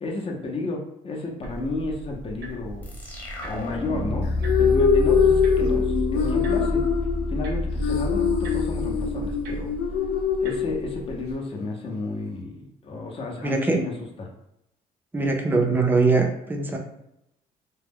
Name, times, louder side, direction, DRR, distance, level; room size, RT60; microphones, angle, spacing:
voice 1, 0.0-3.0 3.4-4.3 4.6-6.9 7.3-9.7 10.4-13.9 14.2-14.3, left 2 dB, 35° left, 0 dB, 0.7 m, -32 dB
sound 1, 1.4-11.3, right 2 dB, 75° right, 0.6 m, -39 dB
sound 2, 2.8-10.1, left 2 dB, 10° left, 0.9 m, -28 dB
sound 3, 4.2-11.3, left 6 dB, 70° left, 0.5 m, -23 dB
voice 2, 13.4-13.8 15.1-16.8, right 3 dB, 10° right, 1 dB, 0.5 m, -22 dB
2.3 x 2.1 x 3.4 m, 0.84 s
cardioid pair, 110°, 17 cm